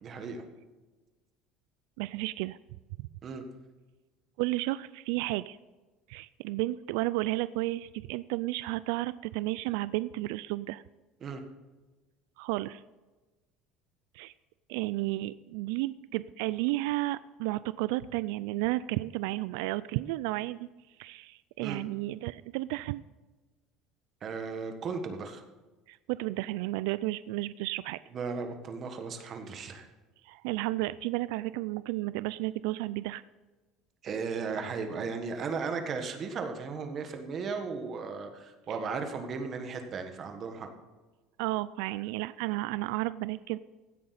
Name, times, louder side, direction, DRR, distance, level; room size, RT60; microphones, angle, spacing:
voice 1, 0.0-0.4 3.2-3.4 11.2-11.4 21.6-21.8 24.2-25.4 28.1-29.9 34.0-40.7, right 5 dB, 30° right, 6 dB, 1.4 m, -36 dB
voice 2, 2.0-2.6 4.4-5.6 6.1-10.8 12.4-12.8 14.1-14.3 14.7-20.7 21.0-23.0 25.9-28.0 30.2-33.2 41.4-43.6, right 18 dB, 90° right, 16 dB, 0.3 m, -32 dB
16.0 x 8.7 x 4.2 m, 1.2 s
cardioid pair, 165°, 0 cm